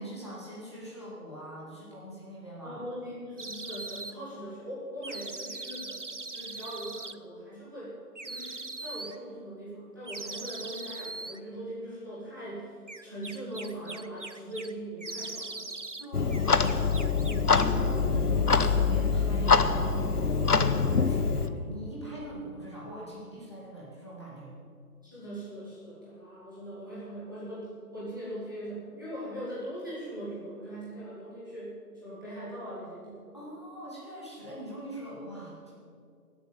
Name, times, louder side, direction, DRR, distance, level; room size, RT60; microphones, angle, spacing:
voice 1, 0.0-2.8 15.9-24.5 33.3-35.7, right 1 dB, 15° left, -7 dB, 2.1 m, -43 dB
voice 2, 2.6-8.0 8.2-15.6 25.0-33.3, right 1 dB, 15° right, -10 dB, 1.9 m, -41 dB
sound 1, 3.4-4.1 5.0-7.2 8.2-9.2 10.0-11.4 12.9-14.7 15.0-16.1 16.3-17.8, right 3 dB, 50° right, 0.5 m, -40 dB
Clock, 16.1-21.5, left 5 dB, 70° left, 1.0 m, -24 dB
19.0 x 8.1 x 7.5 m, 2.3 s
figure-of-eight pair, 180°, 47 cm